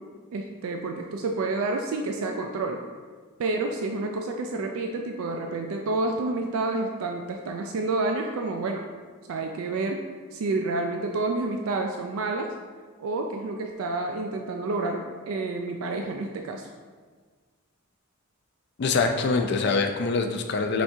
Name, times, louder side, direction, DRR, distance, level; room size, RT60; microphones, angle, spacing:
voice 1, 0.3-2.8 3.4-8.8 9.3-10.0 10.3-12.5 13.0-16.7, right 3 dB, 75° right, 3 dB, 0.3 m, -29 dB
voice 2, 18.8-20.8, left 4 dB, 50° left, 5 dB, 0.4 m, -24 dB
5.8 x 3.4 x 2.6 m, 1.5 s
head